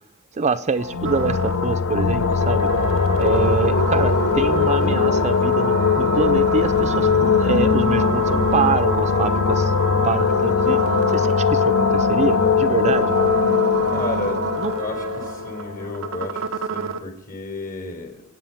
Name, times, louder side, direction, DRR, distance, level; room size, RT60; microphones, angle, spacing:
voice 1, 0.3-2.7 3.2-9.7 10.0-13.1 14.6-14.7, right 4 dB, 30° right, 10 dB, 0.5 m, -25 dB
sound 1, 0.8-16.3, left 5 dB, 60° left, 0.6 m, -20 dB
sound 2, 1.0-17.0, right 5 dB, 65° right, 0.9 m, -29 dB
voice 2, 13.9-14.4 14.7-18.2, left 2 dB, 40° left, 5 dB, 3.7 m, -32 dB
24.5 x 8.9 x 5.6 m, 0.85 s
head